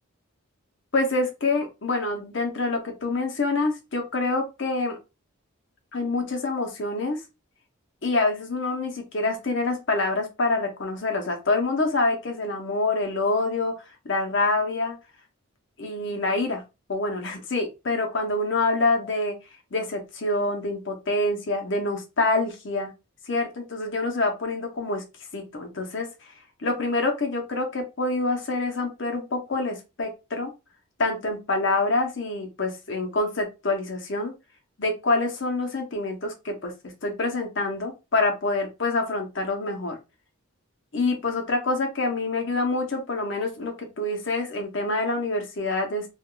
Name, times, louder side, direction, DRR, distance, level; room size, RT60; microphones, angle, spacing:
voice 1, 0.9-5.0 5.9-7.2 8.0-13.7 14.0-15.0 15.8-16.6 16.9-19.4 19.7-22.9 23.3-25.0 25.3-26.1 26.6-30.5 31.0-34.3 34.8-36.7 37.0-40.0 40.9-46.1, left 2 dB, 55° left, 3 dB, 0.8 m, -26 dB
2.5 x 2.3 x 3.7 m, 0.26 s
head